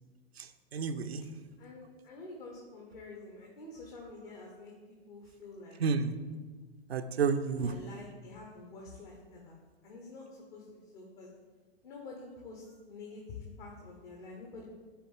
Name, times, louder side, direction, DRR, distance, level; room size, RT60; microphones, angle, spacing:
voice 1, 0.4-1.3 5.8-6.2 6.9-7.7, right 5 dB, 75° right, 9 dB, 0.5 m, -31 dB
voice 2, 1.6-4.7 5.1-5.8 7.6-9.6 9.8-11.3 11.8-14.8, left 3 dB, 55° left, -1 dB, 1.3 m, -48 dB
10.0 x 3.6 x 3.6 m, 1.4 s
figure-of-eight pair, 100°, 31 cm